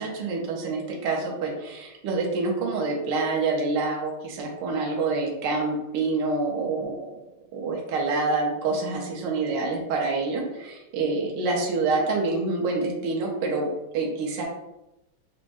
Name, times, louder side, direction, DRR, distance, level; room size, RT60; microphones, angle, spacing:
voice 1, 0.0-7.2 7.5-13.7 13.9-14.5, right 3 dB, 65° right, -1 dB, 1.3 m, -27 dB
5.9 x 2.1 x 2.6 m, 0.92 s
omnidirectional pair, 2.4 m